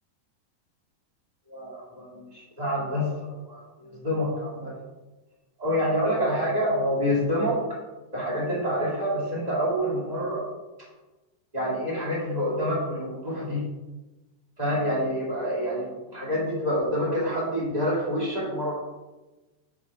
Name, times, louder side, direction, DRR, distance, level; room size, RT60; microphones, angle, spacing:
voice 1, 1.5-4.7 5.6-7.6 8.1-10.4 11.5-13.6 14.6-18.7, equal, 20° right, -6 dB, 1.1 m, -27 dB
6.3 x 6.0 x 4.7 m, 1.1 s
omnidirectional pair, 4.1 m